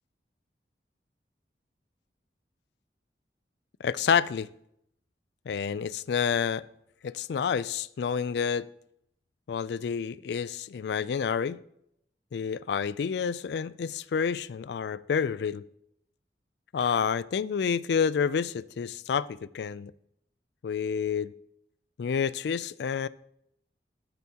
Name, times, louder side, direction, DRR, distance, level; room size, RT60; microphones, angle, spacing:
voice 1, 3.8-4.5 5.5-6.7 7.0-8.7 9.5-11.6 12.3-15.6 16.7-19.9 20.6-21.3 22.0-23.1, left 6 dB, 70° left, 0.3 m, -29 dB
12.5 x 8.2 x 2.9 m
head